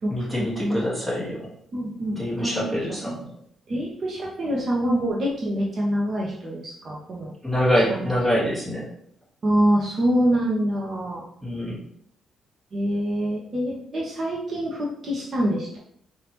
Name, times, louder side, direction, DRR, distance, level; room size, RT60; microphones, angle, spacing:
voice 1, 0.1-1.5 2.2-3.1 7.4-8.9 11.4-11.8, equal, 5° right, -6 dB, 1.8 m, -25 dB
voice 2, 1.7-2.8 3.0-3.1 3.7-7.3 7.9-8.1 9.4-11.2 12.7-15.8, equal, 50° right, -4 dB, 1.3 m, -25 dB
5.2 x 2.9 x 3.1 m, 0.66 s
cardioid pair, 90°, 0 cm